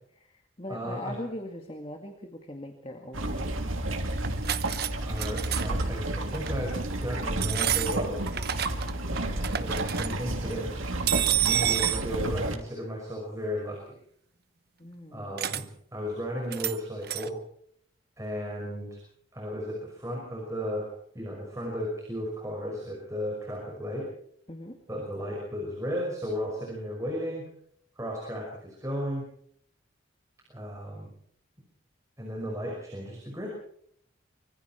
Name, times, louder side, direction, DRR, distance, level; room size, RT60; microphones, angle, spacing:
voice 1, 0.1-3.5 14.8-15.6 24.5-24.8, left 1 dB, 25° left, 4 dB, 2.0 m, -41 dB
voice 2, 0.7-1.2 5.0-8.3 9.3-10.9 11.4-14.0 15.1-17.4 18.2-19.0 19.3-20.9 21.1-24.1 24.9-27.4 28.0-29.2 30.5-31.1 32.2-33.5, equal, 15° right, -2 dB, 5.7 m, -34 dB
sound 1, 3.1-12.6, right 1 dB, 85° right, 2.9 m, -31 dB
sound 2, 4.2-4.9 5.2-5.8 6.3-6.6 7.4-8.9 9.2-10.1 11.1-12.0 15.4-15.6 16.5-16.8 17.0-17.3, right 11 dB, 50° right, 0.9 m, -29 dB
25.0 x 24.5 x 4.5 m, 0.66 s
head